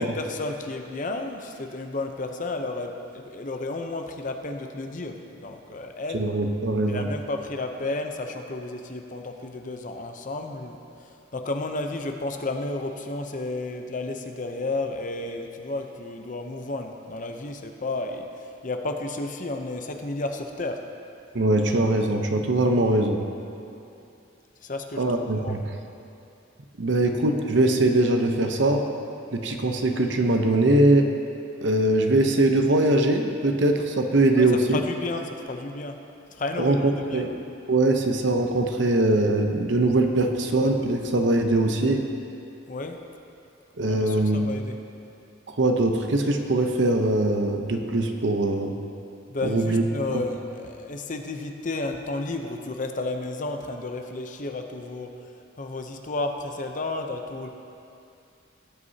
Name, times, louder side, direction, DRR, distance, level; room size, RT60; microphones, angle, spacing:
voice 1, 0.0-6.2 6.9-20.8 24.6-25.6 34.4-36.0 36.4-37.3 42.7-43.0 43.9-44.8 49.3-55.1 55.6-57.5, left 2 dB, 40° left, 4 dB, 0.7 m, -32 dB
voice 2, 6.1-7.0 21.3-23.2 25.0-25.6 26.8-28.9 29.3-31.1 31.6-34.8 36.6-37.3 37.7-42.0 43.8-44.5 45.6-48.8 49.4-49.8 50.1-50.2, right 2 dB, 65° right, 4 dB, 0.8 m, -22 dB
17.0 x 8.1 x 2.8 m, 2.7 s
head